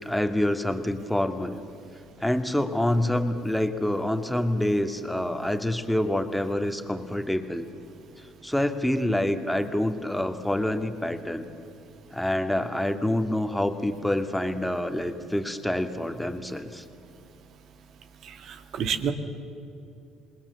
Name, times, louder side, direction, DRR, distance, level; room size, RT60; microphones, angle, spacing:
voice 1, 0.0-1.6 2.2-7.7 8.4-11.5 12.1-16.8, left 1 dB, 5° left, 7 dB, 2.2 m, -27 dB
voice 2, 18.2-19.1, right 7 dB, 55° right, 9 dB, 1.8 m, -29 dB
27.0 x 20.5 x 7.1 m, 2.6 s
hypercardioid pair, 60°, 0 cm